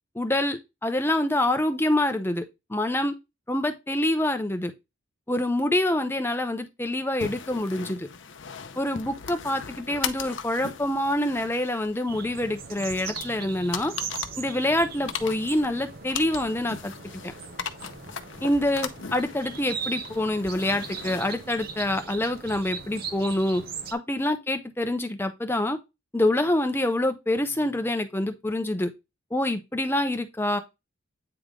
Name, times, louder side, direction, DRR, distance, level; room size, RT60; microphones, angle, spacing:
voice 1, 0.1-2.4 2.7-3.1 3.5-4.7 5.3-8.1 8.8-13.9 14.4-16.9 17.2-17.3 18.4-23.6 23.9-25.8 26.1-28.9 29.3-30.6, left 1 dB, 10° left, 0.6 m, -26 dB
sound 1, 7.2-23.0, left 7 dB, 60° left, 0.6 m, -39 dB
sound 2, 12.1-23.9, right 5 dB, 45° right, 0.7 m, -39 dB
8.7 x 3.4 x 3.7 m
head